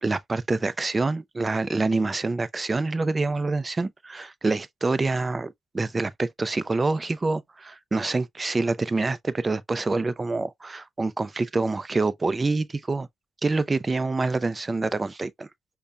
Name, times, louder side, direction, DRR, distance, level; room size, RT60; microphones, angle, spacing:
voice 1, 0.0-13.1 13.4-15.5, right 3 dB, 25° right, 0.4 m, -26 dB
5.3 x 2.1 x 2.3 m
cardioid pair, 90°, 0 cm